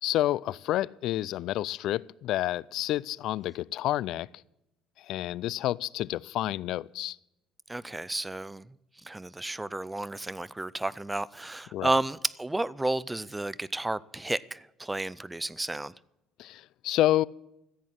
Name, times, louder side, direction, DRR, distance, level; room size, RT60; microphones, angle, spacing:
voice 1, 0.0-4.3 5.0-7.2 11.7-11.9 16.4-17.2, left 14 dB, 60° left, 0.4 m, -29 dB
voice 2, 7.7-8.7 9.0-15.9, right 2 dB, 10° right, 0.4 m, -32 dB
15.0 x 8.4 x 7.5 m
cardioid pair, 130°, 0 cm